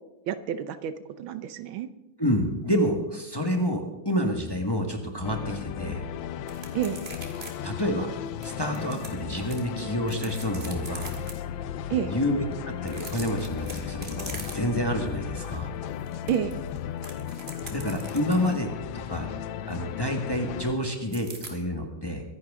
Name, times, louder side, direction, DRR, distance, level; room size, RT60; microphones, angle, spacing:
voice 1, 0.3-1.9 6.7-7.0 11.9-12.1 16.3-16.6, right 10 dB, 80° right, 12 dB, 1.6 m, -29 dB
voice 2, 2.2-6.0 7.6-8.1 8.4-11.1 12.1-12.4 12.8-15.7 17.7-18.7 19.1-19.3 19.7-22.2, equal, 15° left, 3 dB, 1.3 m, -28 dB
sound 1, 5.2-20.7, left 9 dB, 75° left, 1.4 m, -35 dB
sound 2, 6.5-7.5 7.8-7.9 8.4-9.6 10.0-11.3 12.8-14.9 15.3-15.5 15.8-18.6 21.1-21.5, right 3 dB, 30° right, 2.0 m, -42 dB
23.5 x 11.0 x 3.6 m, 0.99 s
omnidirectional pair, 2.2 m